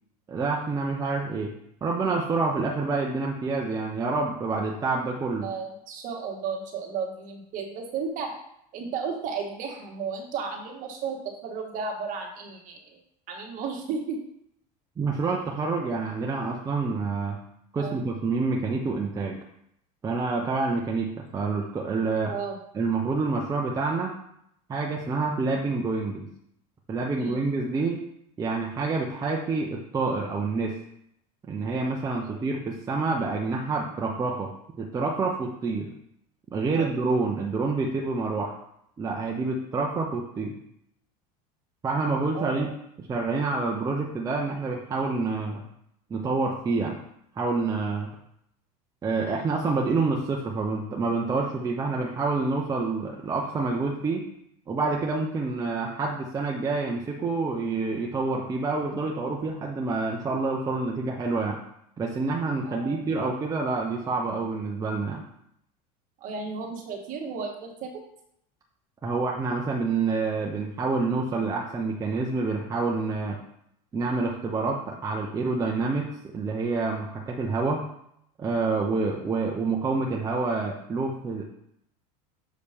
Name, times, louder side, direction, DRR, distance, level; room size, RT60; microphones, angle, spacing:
voice 1, 0.3-1.5 1.8-5.5 15.0-17.4 17.7-19.4 20.0-22.3 22.7-24.2 24.7-26.3 26.9-28.0 28.4-30.8 31.5-34.5 34.8-35.9 36.5-38.6 39.0-40.5 41.8-42.7 43.0-45.6 46.1-46.9 47.4-48.1 49.0-54.2 54.7-61.6 62.0-65.2 69.0-73.4 73.9-76.1 76.3-77.8 78.4-81.5, right 3 dB, 20° right, -1 dB, 0.8 m, -27 dB
voice 2, 5.4-8.3 8.7-11.2 11.4-13.0 13.3-14.2 17.8-18.0 22.3-22.6 27.2-27.4 32.2-32.4 36.7-36.9 42.3-42.8 62.6-63.0 66.2-67.9, right 5 dB, 45° right, 1 dB, 1.8 m, -34 dB
6.9 x 5.1 x 5.2 m, 0.75 s
cardioid pair, 145°, 19 cm